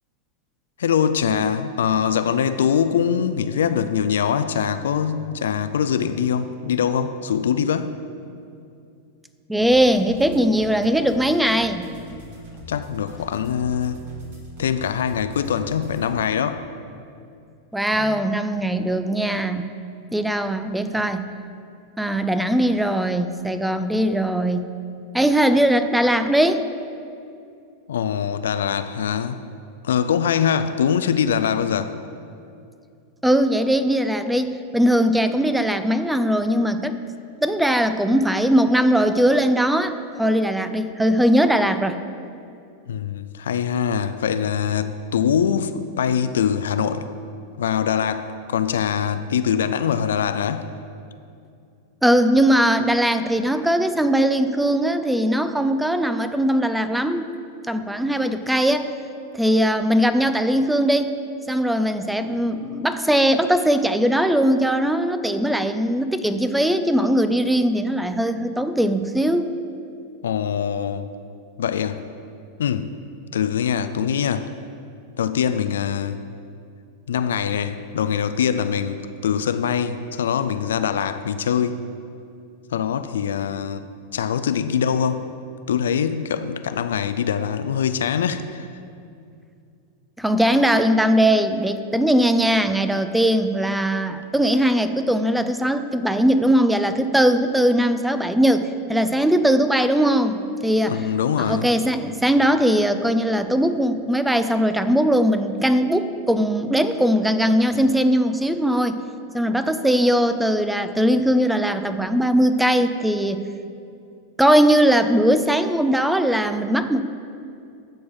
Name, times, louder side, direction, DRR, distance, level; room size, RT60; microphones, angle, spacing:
voice 1, 0.8-8.0 12.7-14.0 14.6-16.6 27.9-29.5 29.8-31.9 42.9-47.1 47.6-50.7 70.2-71.1 71.6-72.0 72.6-72.9 73.3-74.5 75.2-76.2 77.1-81.8 82.7-83.8 84.1-85.3 85.7-88.7 100.9-101.7, left 8 dB, 65° left, 11 dB, 0.4 m, -23 dB
voice 2, 9.5-11.9 17.7-19.7 20.1-21.2 22.0-24.7 25.1-26.6 33.2-37.0 37.4-42.0 52.0-57.3 57.7-58.9 59.3-61.2 61.5-69.5 90.2-101.0 101.4-109.0 109.3-113.4 114.4-117.0, equal, 5° right, 10 dB, 0.5 m, -20 dB
sound 1, 9.6-16.2, equal, 50° right, 2.1 m, -42 dB
13.0 x 4.6 x 7.0 m, 2.5 s
figure-of-eight pair, 90°, 0 cm